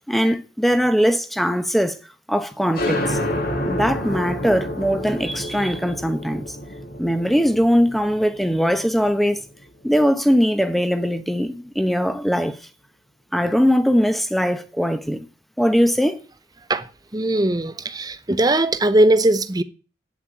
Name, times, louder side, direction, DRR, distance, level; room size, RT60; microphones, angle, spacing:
voice 1, 0.1-2.0 2.3-3.2 3.6-6.5 7.0-9.4 9.8-12.6 13.3-15.3 15.6-16.2, equal, ahead, 1.0 m, -20 dB
sound 1, 2.7-10.0, left 1 dB, 50° left, 2.4 m, -29 dB
voice 2, 17.1-19.6, right 1 dB, 20° right, 0.8 m, -19 dB
8.9 x 8.3 x 8.8 m
head